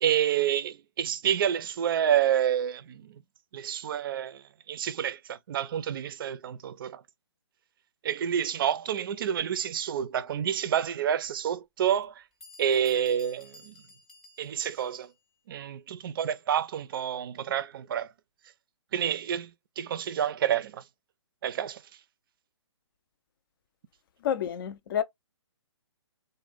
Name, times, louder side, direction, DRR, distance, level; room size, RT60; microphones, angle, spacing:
voice 1, 0.0-3.2 3.5-7.0 8.0-12.2 12.6-13.7 14.4-15.1 15.5-18.1 18.9-20.8 21.4-21.8, right 9 dB, 45° right, 0.4 m, -28 dB
Bell, 11.2-11.3 12.0-12.1 12.4-15.2, left 2 dB, ahead, 0.6 m, -54 dB
voice 2, 24.2-25.0, left 9 dB, 45° left, 0.4 m, -29 dB
2.5 x 2.1 x 3.4 m
hypercardioid pair, 150°, 16 cm